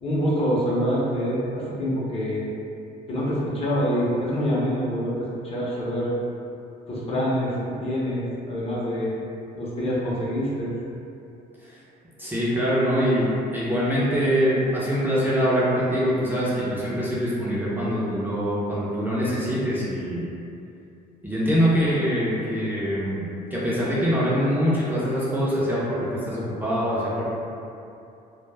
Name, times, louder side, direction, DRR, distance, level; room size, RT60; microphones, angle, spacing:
voice 1, 0.0-2.4 3.1-5.1 5.4-6.1 6.9-9.1 9.5-10.7, equal, 35° left, -7 dB, 0.7 m, -25 dB
voice 2, 12.2-13.3 13.5-20.3 21.2-27.3, equal, 10° right, -9 dB, 0.5 m, -24 dB
2.1 x 2.0 x 3.2 m, 2.7 s
cardioid pair, 110°, 17 cm